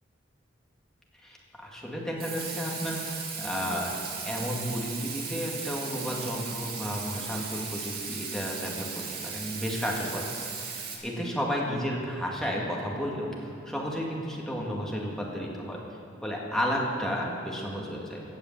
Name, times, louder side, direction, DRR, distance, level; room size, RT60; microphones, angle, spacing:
voice 1, 1.2-3.9 4.2-10.3 11.0-15.8 16.2-18.2, equal, 5° left, -3 dB, 2.0 m, -32 dB
Water tap faucet / Sink (filling or washing), 2.2-11.0, right 5 dB, 55° right, 2.2 m, -37 dB
16.5 x 6.8 x 7.6 m, 2.8 s
head